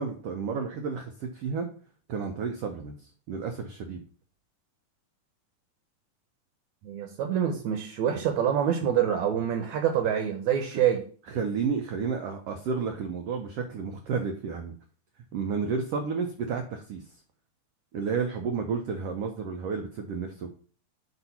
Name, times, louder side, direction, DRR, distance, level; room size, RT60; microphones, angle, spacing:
voice 1, 0.0-1.7 2.1-2.9 3.3-4.0 11.3-14.7 15.3-17.0 17.9-20.5, right 5 dB, 85° right, 4 dB, 1.3 m, -31 dB
voice 2, 6.8-11.0, right 9 dB, 70° right, 5 dB, 1.9 m, -26 dB
7.9 x 2.7 x 5.7 m, 0.42 s
omnidirectional pair, 3.6 m